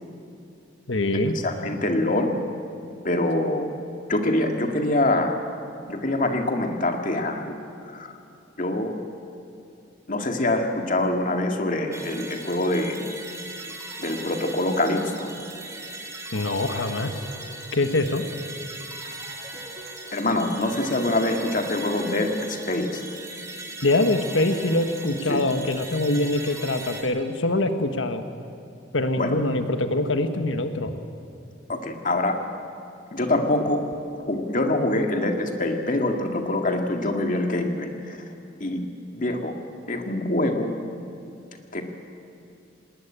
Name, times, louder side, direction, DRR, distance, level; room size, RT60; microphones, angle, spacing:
voice 1, 0.9-1.4 16.3-17.1 17.7-18.2 23.8-28.2 28.9-30.9, left 2 dB, 85° left, 8 dB, 1.5 m, -24 dB
voice 2, 1.4-2.4 3.0-3.7 4.1-5.4 5.9-7.6 7.9-8.1 8.6-8.9 10.1-13.1 14.0-15.3 20.1-23.0 25.3-25.4 29.2-29.4 31.7-32.4 33.1-33.8 34.1-38.2 38.6-38.8 39.1-39.6 39.9-40.7 41.7-41.8, left 1 dB, 45° left, 4 dB, 2.0 m, -25 dB
sound 1, 11.9-27.0, right 2 dB, 15° right, 2.6 m, -38 dB
19.5 x 19.0 x 9.0 m, 2.7 s
head